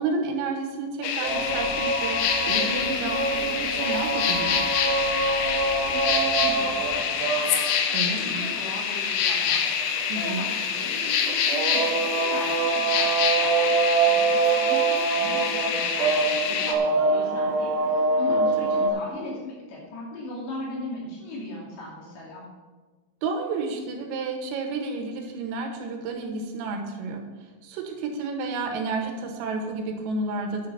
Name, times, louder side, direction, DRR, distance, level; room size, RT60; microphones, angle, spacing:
voice 1, 0.0-4.6 7.9-8.5 10.1-10.5 18.3-18.5 18.8-18.9 23.2-27.2 27.6-30.7, right 3 dB, 85° right, 3 dB, 3.9 m, -31 dB
sound 1, 1.0-16.7, left 7 dB, 85° left, 3.5 m, -26 dB
sound 2, 1.0-18.9, right 4 dB, 65° right, 2.5 m, -26 dB
sound 3, 1.2-7.0, left 2 dB, 40° right, 1.7 m, -45 dB
voice 2, 5.6-7.5 8.2-22.4, left 2 dB, 60° left, -4 dB, 4.7 m, -38 dB
10.5 x 7.5 x 5.6 m, 1.3 s
omnidirectional pair, 5.9 m